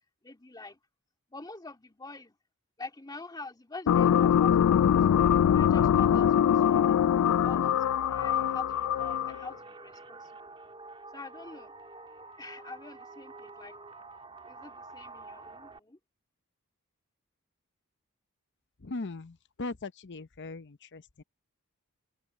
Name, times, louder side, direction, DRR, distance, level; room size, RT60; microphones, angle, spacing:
voice 1, 0.2-0.8 1.3-2.4 2.8-7.0 7.4-10.3 11.1-11.8 12.4-13.8 14.5-16.0, left 3 dB, 20° left, 2.5 m, -45 dB
sound 1, 3.9-9.5, left 9 dB, 70° left, 0.3 m, -23 dB
sound 2, 7.7-15.8, right 3 dB, 25° right, 1.6 m, -48 dB
voice 2, 18.8-21.2, left 3 dB, 55° left, 0.8 m, -39 dB
head